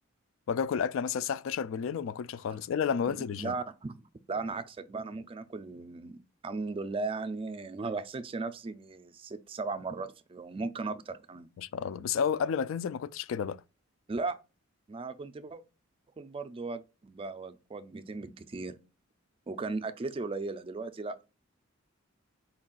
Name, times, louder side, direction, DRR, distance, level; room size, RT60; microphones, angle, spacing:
voice 1, 0.5-3.6 11.6-13.6, left 7 dB, 70° left, 0.3 m, -31 dB
voice 2, 3.1-4.0 4.3-11.5 14.1-14.4 14.9-15.6 16.2-18.8 19.5-21.2, right 3 dB, 25° right, 0.4 m, -37 dB
4.4 x 2.4 x 3.8 m
head